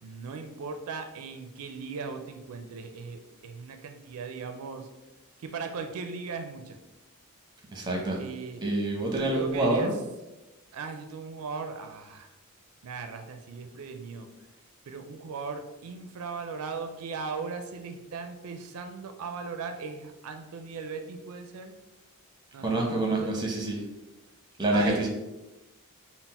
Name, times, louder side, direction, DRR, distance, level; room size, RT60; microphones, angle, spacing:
voice 1, 0.0-4.9 5.4-6.8 8.2-8.6 9.1-9.9 10.7-12.3 12.8-14.3 14.9-21.8 22.5-23.4 24.7-25.1, right 5 dB, 75° right, 6 dB, 0.4 m, -38 dB
voice 2, 7.7-8.2 8.6-9.9 22.6-23.8 24.6-25.1, right 2 dB, 20° right, 0 dB, 0.8 m, -27 dB
4.1 x 2.0 x 4.1 m, 1.0 s
head